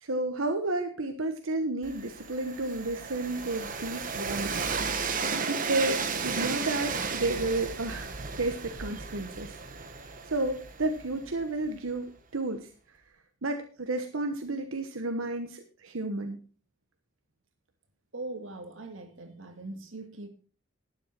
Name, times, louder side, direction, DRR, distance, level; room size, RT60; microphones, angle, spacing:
voice 1, 0.0-4.7 5.5-9.5 10.3-12.1 12.3-12.7 13.4-16.4, right 2 dB, 85° right, 5 dB, 1.2 m, -31 dB
Train, 1.8-11.7, right 5 dB, 40° right, 1.2 m, -34 dB
voice 2, 18.1-20.3, right 2 dB, 70° right, 6 dB, 2.1 m, -41 dB
11.5 x 9.5 x 4.4 m, 0.39 s
head